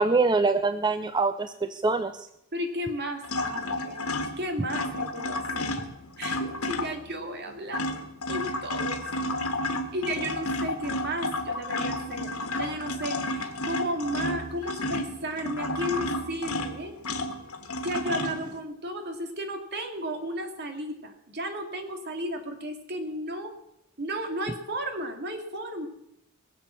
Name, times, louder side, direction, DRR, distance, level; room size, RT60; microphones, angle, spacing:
voice 1, 0.0-2.1, right 3 dB, 20° right, 9 dB, 0.5 m, -24 dB
voice 2, 2.5-4.1 4.4-5.7 6.2-8.0 8.3-9.1 9.9-16.9 17.8-23.5 24.0-25.9, equal, 50° right, 5 dB, 2.2 m, -34 dB
sound 1, 3.2-7.1 7.5-18.6, left 2 dB, 85° left, 1.7 m, -31 dB
21.5 x 7.3 x 7.3 m, 0.81 s
head